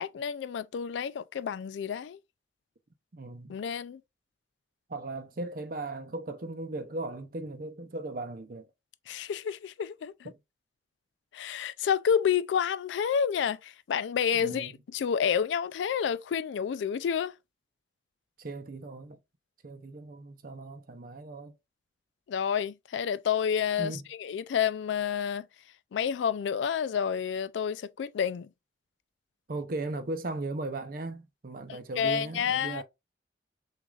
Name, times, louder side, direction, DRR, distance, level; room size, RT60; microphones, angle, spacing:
voice 1, 0.0-2.2 3.5-4.0 9.1-10.3 11.3-17.3 22.3-25.5 25.9-28.5 31.7-32.8, left 7 dB, 85° left, 0.3 m, -29 dB
voice 2, 3.1-3.6 4.9-8.7 10.2-10.4 14.3-14.7 18.4-19.2 19.6-21.6 23.8-24.0 29.5-32.8, right 2 dB, 50° right, 0.6 m, -37 dB
6.1 x 2.5 x 2.4 m
head